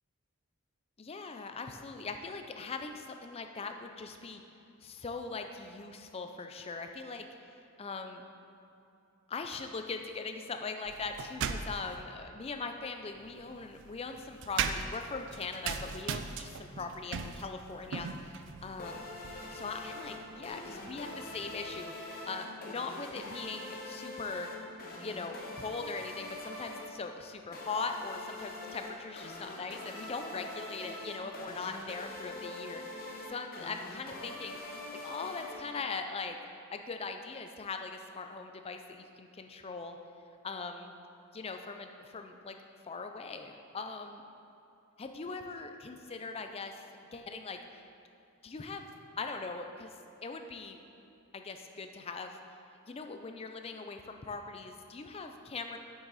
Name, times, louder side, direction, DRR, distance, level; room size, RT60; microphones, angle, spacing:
voice 1, 1.0-4.4 4.8-7.3 7.8-8.2 9.3-19.0 19.5-24.5 25.0-36.4 36.7-40.0 40.4-40.9 41.3-42.5 42.9-44.2 45.0-46.8 47.1-47.8 48.4-48.8 49.2-50.8 51.3-52.4 52.9-55.8, left 4 dB, 25° left, 6 dB, 0.4 m, -40 dB
sound 1, 10.8-12.0 13.1-21.8, right 6 dB, 55° right, 0.3 m, -40 dB
sound 2, 18.8-36.2, left 2 dB, 40° left, 1.0 m, -44 dB
7.8 x 6.3 x 4.1 m, 2.8 s
head